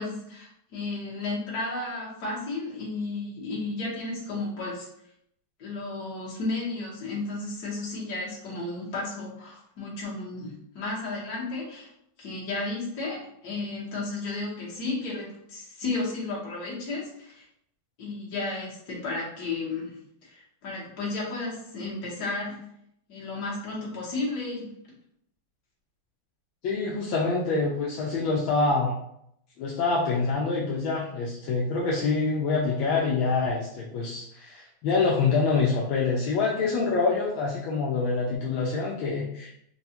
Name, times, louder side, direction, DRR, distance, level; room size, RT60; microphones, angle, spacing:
voice 1, 0.0-4.9 5.6-11.9 12.2-17.5 18.0-22.6 23.1-24.7, left 3 dB, 55° left, -5 dB, 1.6 m, -33 dB
voice 2, 26.6-28.9 29.6-39.5, left 4 dB, 80° left, -3 dB, 1.3 m, -26 dB
4.5 x 2.3 x 2.8 m, 0.73 s
omnidirectional pair, 2.3 m